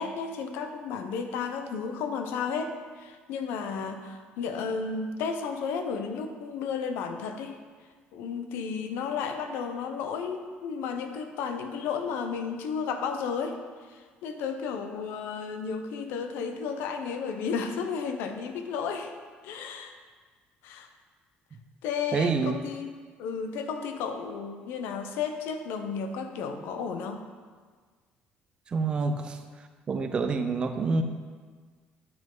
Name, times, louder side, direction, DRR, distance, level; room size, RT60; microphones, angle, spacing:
voice 1, 0.0-7.6 8.1-13.6 13.9-19.1 19.4-19.9 20.6-20.9 21.8-22.9 23.2-27.2, left 5 dB, 85° left, 6 dB, 0.7 m, -33 dB
voice 2, 22.1-22.5 28.7-29.4 29.9-31.0, right 4 dB, 25° right, 7 dB, 0.5 m, -27 dB
9.2 x 5.2 x 3.9 m, 1.6 s
cardioid pair, 165°, 4 cm